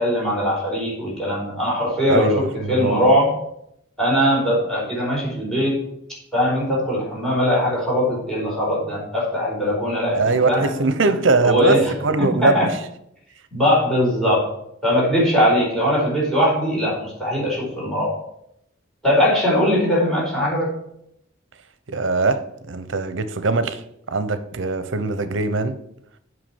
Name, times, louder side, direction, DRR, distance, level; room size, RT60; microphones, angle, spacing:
voice 1, 0.0-3.3 4.0-5.8 6.3-10.7 11.4-11.8 12.2-12.7 13.5-14.4 14.8-18.1 19.0-20.7, equal, 5° left, 4.4 m, -20 dB
voice 2, 2.1-3.1 10.1-12.8 21.9-23.8 24.1-25.8, right 3 dB, 70° right, 0.8 m, -21 dB
8.0 x 5.7 x 7.2 m
head